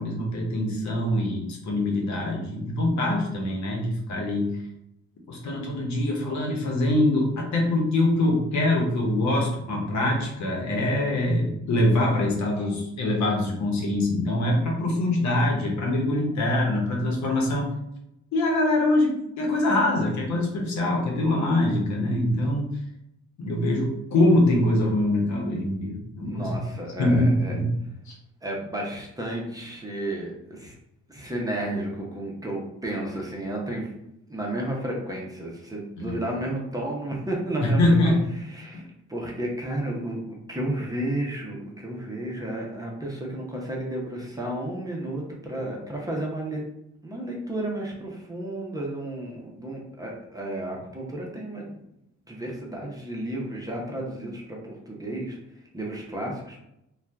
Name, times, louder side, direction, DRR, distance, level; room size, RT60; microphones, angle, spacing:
voice 1, 0.0-4.5 5.3-17.7 18.3-22.7 23.4-26.5 27.0-27.7 28.1-28.2 36.0-36.2 37.6-38.2, left 1 dB, 65° left, -1 dB, 1.0 m, -24 dB
voice 2, 26.2-27.5 28.4-30.8 31.1-33.9 34.3-38.1 38.5-40.2 40.5-46.6 47.0-51.8 52.3-55.4 55.7-56.6, right 1 dB, 10° right, -2 dB, 0.8 m, -32 dB
2.6 x 2.4 x 3.4 m, 0.81 s
cardioid pair, 90°, 30 cm